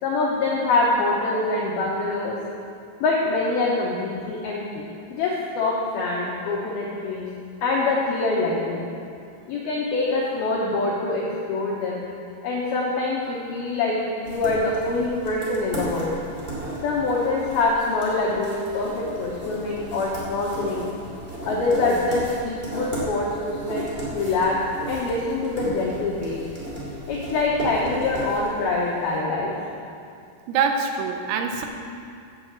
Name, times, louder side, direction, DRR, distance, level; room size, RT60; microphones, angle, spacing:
voice 1, 0.0-2.4 3.0-4.8 5.1-7.3 7.6-8.8 9.5-12.0 12.4-16.2 16.8-20.9 21.4-23.9 24.1-26.4 27.1-29.5, left 3 dB, 85° left, -4 dB, 2.2 m, -24 dB
sound 1, 14.2-29.1, right 1 dB, 25° right, 1.2 m, -35 dB
voice 2, 30.5-31.7, right 5 dB, 90° right, 4 dB, 3.5 m, -24 dB
8.4 x 8.3 x 7.8 m, 2.5 s
omnidirectional pair, 5.8 m